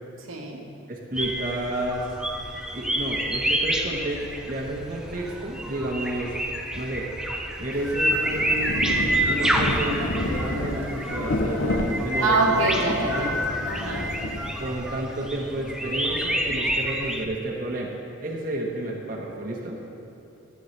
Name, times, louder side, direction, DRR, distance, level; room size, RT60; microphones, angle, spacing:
voice 1, 0.3-0.6 12.2-13.3 13.7-14.1, right 2 dB, 85° right, -1 dB, 1.2 m, -24 dB
voice 2, 0.9-2.2 2.7-7.1 7.6-8.9 9.3-12.6 12.9-13.5 14.6-19.8, right 1 dB, 45° right, -2 dB, 1.0 m, -31 dB
sound 1, 1.2-17.3, right 1 dB, 5° right, 0.4 m, -28 dB
Rain, 7.7-15.0, left 1 dB, 65° left, 0.8 m, -30 dB
13.5 x 7.9 x 3.2 m, 2.7 s
head